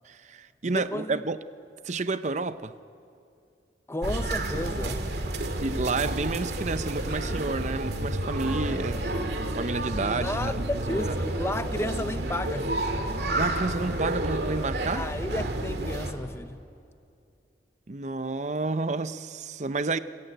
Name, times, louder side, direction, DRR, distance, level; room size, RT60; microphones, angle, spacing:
voice 1, 0.0-1.4 1.8-2.7 5.6-9.1 9.5-11.2 13.3-15.1 17.9-20.0, right 3 dB, 40° right, 0.7 m, -30 dB
voice 2, 0.6-1.2 3.9-5.0 10.0-12.7 14.9-16.6, left 1 dB, 15° left, 0.6 m, -33 dB
sound 1, 4.0-16.1, right 1 dB, 65° right, 2.3 m, -30 dB
25.5 x 21.5 x 9.2 m
head